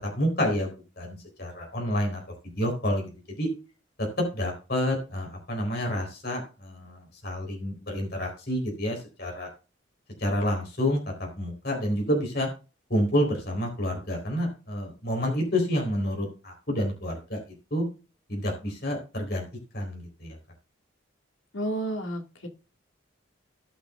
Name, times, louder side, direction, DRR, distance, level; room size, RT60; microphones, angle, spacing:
voice 1, 0.0-2.2 2.6-3.1 3.4-3.5 4.2-9.5 10.2-12.5 12.9-17.4 17.7-17.8 18.3-19.4 19.7-20.4, equal, 50° left, 1 dB, 4.0 m, -29 dB
voice 2, 21.5-22.5, right 1 dB, 85° left, 4 dB, 2.1 m, -31 dB
18.0 x 6.4 x 2.5 m, 0.31 s
head